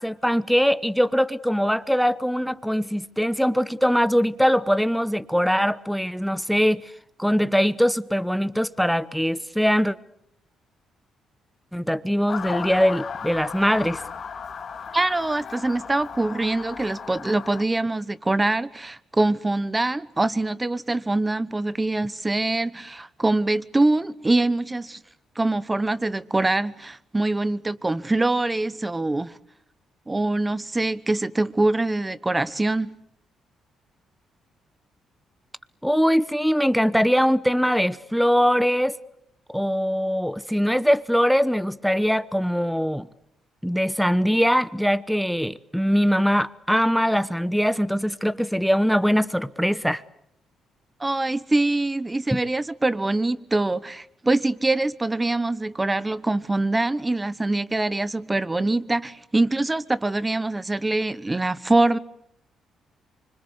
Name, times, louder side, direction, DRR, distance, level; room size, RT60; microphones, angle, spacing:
voice 1, 0.0-6.9 7.2-10.0 11.7-14.0 35.8-39.0 39.5-43.1 43.6-50.0 52.3-52.4, equal, ahead, 1.0 m, -22 dB
Motor vehicle (road) / Siren, 12.3-17.6, left 6 dB, 50° left, 2.3 m, -35 dB
voice 2, 14.9-25.0 25.4-29.4 30.1-33.0 51.0-62.0, right 2 dB, 15° right, 1.1 m, -24 dB
25.5 x 25.0 x 8.3 m
cardioid pair, 90°, 0 cm